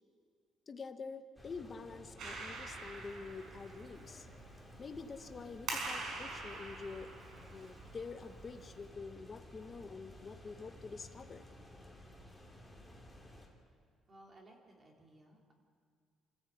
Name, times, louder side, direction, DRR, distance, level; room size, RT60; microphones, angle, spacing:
voice 1, 0.7-4.3 4.8-7.1 7.5-11.4, left 4 dB, 25° left, 8 dB, 1.2 m, -47 dB
sound 1, 1.3-13.5, left 1 dB, ahead, 3.2 m, -55 dB
Clapping, 2.2-8.9, right 3 dB, 60° right, 5.4 m, -46 dB
voice 2, 14.1-15.5, right 1 dB, 25° right, 0 dB, 3.4 m, -59 dB
29.0 x 15.0 x 8.4 m, 2.1 s
cardioid pair, 160°, 0 cm